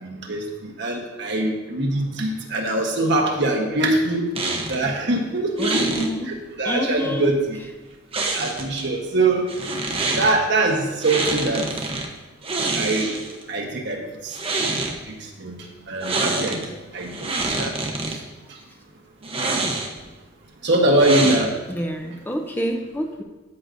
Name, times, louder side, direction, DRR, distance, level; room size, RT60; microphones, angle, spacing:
voice 1, 0.0-0.4 0.8-4.3 4.7-7.6 8.3-9.5 10.2-11.6 12.7-13.1 13.5-14.0 15.4-15.6 15.9-16.6 16.9-17.1 17.6-17.7 20.6-21.5, right 2 dB, 55° right, 1 dB, 1.3 m, -22 dB
sound 1, 4.3-4.9 5.6-6.1 8.1-8.8 9.5-10.3 11.0-12.1 12.4-13.4 14.2-14.9 16.0-16.7 17.0-18.1 19.2-20.1 21.0-21.7, right 3 dB, 30° right, 0.9 m, -26 dB
voice 2, 5.6-6.3 6.6-7.3 21.7-23.2, equal, 10° left, 4 dB, 0.5 m, -27 dB
13.0 x 6.4 x 2.7 m, 1.1 s
head